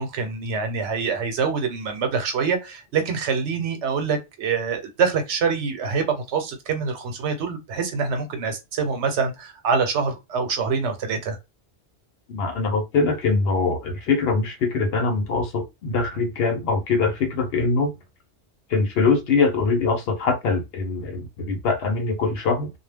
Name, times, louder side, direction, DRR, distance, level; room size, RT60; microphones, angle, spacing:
voice 1, 0.0-11.4, right 5 dB, 85° right, 1.0 m, -25 dB
voice 2, 12.3-17.9 18.7-22.7, left 4 dB, 65° left, 0.8 m, -23 dB
2.2 x 2.2 x 3.3 m
omnidirectional pair, 1.1 m